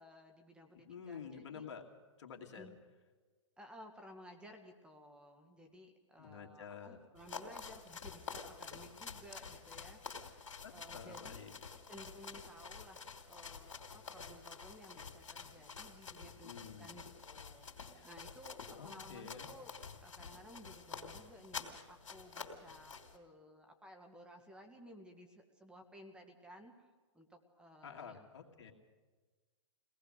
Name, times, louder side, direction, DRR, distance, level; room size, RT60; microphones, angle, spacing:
voice 1, 0.0-1.7 2.5-2.8 3.6-10.4 10.7-11.4 11.9-26.9 27.1-28.2 28.6-28.7, equal, 5° right, 4 dB, 1.8 m, -56 dB
voice 2, 0.8-1.9 2.2-2.7 6.2-7.0 10.6-11.6 16.2-17.0 17.9-18.1 18.7-19.5 27.8-28.7, left 7 dB, 70° left, 1 dB, 2.6 m, -50 dB
sound 1, 7.2-23.2, left 5 dB, 85° left, 2.9 m, -49 dB
23.5 x 18.5 x 6.6 m, 1.4 s
hypercardioid pair, 130°, 16 cm